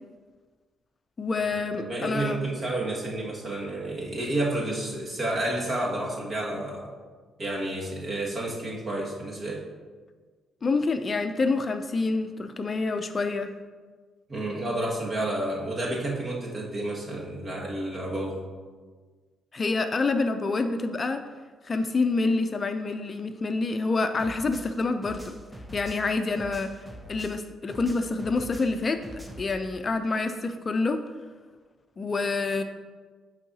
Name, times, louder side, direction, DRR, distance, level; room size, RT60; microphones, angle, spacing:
voice 1, 1.2-2.4 10.6-13.5 19.5-21.2 21.6-25.4 25.7-26.7 27.1-29.0 29.4-31.0 32.0-32.6, left 3 dB, 35° left, 8 dB, 0.4 m, -27 dB
voice 2, 1.8-6.9 7.4-9.7 14.3-18.5, right 1 dB, 45° right, -3 dB, 1.8 m, -30 dB
sound 1, 24.2-27.4 27.7-29.5, equal, 5° right, 0.7 m, -43 dB
10.0 x 4.6 x 2.8 m, 1.4 s
cardioid pair, 90°, 0 cm